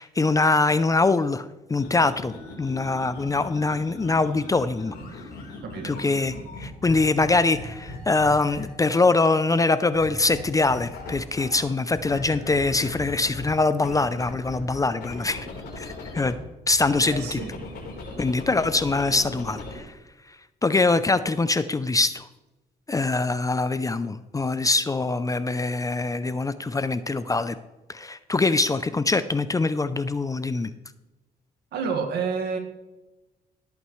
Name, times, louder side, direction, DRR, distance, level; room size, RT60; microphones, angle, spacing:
voice 1, 0.0-4.9 5.8-6.3 6.6-15.5 15.8-16.3 16.7-17.4 18.2-19.9 20.6-22.3 22.9-27.5 27.9-30.7, left 3 dB, 20° left, 13 dB, 0.5 m, -23 dB
sound 1, 1.7-8.9 9.9-11.6 11.9-16.3 16.7-19.8, left 2 dB, 85° left, 4.0 m, -39 dB
voice 2, 5.6-6.2 17.0-17.6 31.7-32.6, right 5 dB, 80° right, 4 dB, 1.9 m, -30 dB
17.0 x 8.6 x 3.2 m, 1.0 s
cardioid pair, 105°, 17 cm